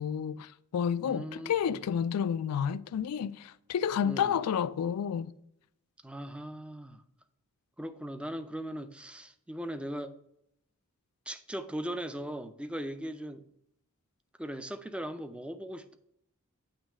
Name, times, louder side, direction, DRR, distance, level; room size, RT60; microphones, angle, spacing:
voice 1, 0.0-5.3, left 8 dB, 90° left, 0.3 m, -30 dB
voice 2, 1.0-1.8 4.0-4.4 6.0-7.0 7.8-10.1 11.3-13.4 14.4-16.0, right 1 dB, 5° right, 0.4 m, -39 dB
8.9 x 3.1 x 4.8 m
head